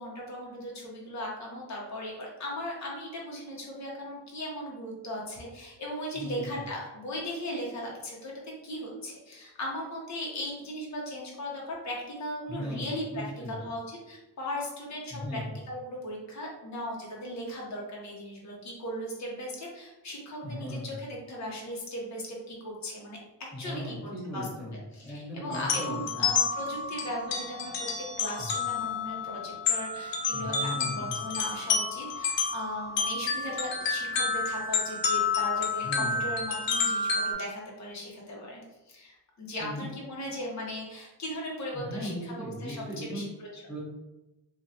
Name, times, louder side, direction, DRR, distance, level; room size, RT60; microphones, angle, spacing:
voice 1, 0.0-15.4 15.7-23.2 23.6-24.5 24.7-38.6 38.9-43.6, left 1 dB, 40° left, -3 dB, 0.9 m, -38 dB
voice 2, 6.1-6.6 12.5-13.6 15.1-15.5 20.4-20.9 23.5-26.3 28.4-28.5 30.3-31.2 35.8-36.2 39.6-39.9 41.7-43.3 43.7-43.8, equal, 5° right, -8 dB, 1.3 m, -37 dB
sound 1, 25.5-37.3, left 5 dB, 70° left, 0.7 m, -30 dB
3.0 x 2.4 x 2.7 m, 1.0 s
cardioid pair, 115°, 45 cm